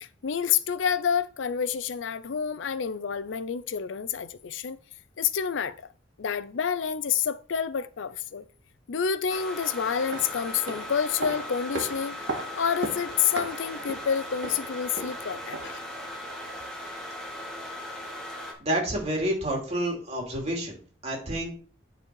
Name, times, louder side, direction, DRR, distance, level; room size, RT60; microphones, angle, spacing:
voice 1, 0.0-4.8 5.2-5.8 6.2-8.4 8.9-12.2 12.6-15.8, left 7 dB, 80° left, 0.5 m, -28 dB
sound 1, 9.3-18.5, left 1 dB, 5° left, 1.9 m, -38 dB
sound 2, 9.9-15.9 16.2-16.3, right 2 dB, 90° right, 1.8 m, -38 dB
voice 2, 18.6-21.6, right 1 dB, 35° right, 2.7 m, -29 dB
9.7 x 4.2 x 4.6 m
head